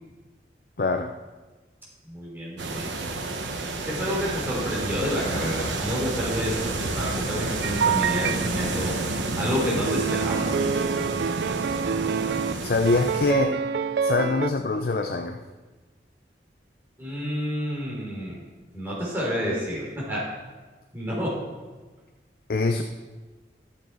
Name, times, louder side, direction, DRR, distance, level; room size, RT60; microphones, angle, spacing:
voice 1, 0.8-1.1 12.6-13.6 14.0-15.4 22.5-22.8, left 3 dB, 55° left, 6 dB, 0.5 m, -24 dB
voice 2, 2.0-2.9 3.8-8.9 9.4-10.5 17.0-18.4 18.7-20.3 20.9-21.4, equal, 10° right, -6 dB, 3.2 m, -29 dB
sound 1, 2.6-13.3, right 2 dB, 90° right, 1.1 m, -30 dB
sound 2, 7.6-8.5 9.9-12.5 12.9-14.5, right 6 dB, 65° right, 0.3 m, -26 dB
13.5 x 7.3 x 4.6 m, 1.3 s
head